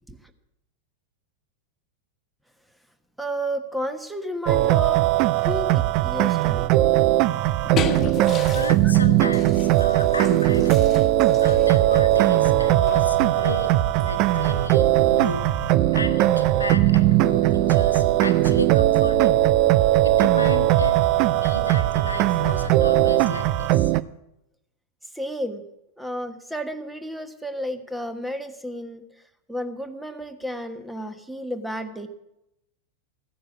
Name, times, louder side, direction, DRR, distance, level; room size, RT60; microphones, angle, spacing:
voice 1, 3.2-5.0 5.3-6.7 8.8-8.9 25.1-25.6 26.0-29.0 29.5-32.1, equal, 5° right, 9 dB, 1.3 m, -32 dB
sound 1, 4.5-24.0, right 16 dB, 40° right, 0.5 m, -19 dB
sound 2, 7.3-15.4, left 7 dB, 30° left, 1.4 m, -36 dB
voice 2, 8.5-10.9 11.4-13.7 14.0-15.5 15.9-19.5 20.0-21.0 21.3-23.9, left 3 dB, 75° left, 7 dB, 1.3 m, -34 dB
Motor vehicle (road) / Siren, 9.1-23.6, left 3 dB, 90° right, 3.6 m, -37 dB
15.5 x 10.0 x 7.2 m, 0.86 s
figure-of-eight pair, 90°, 0 cm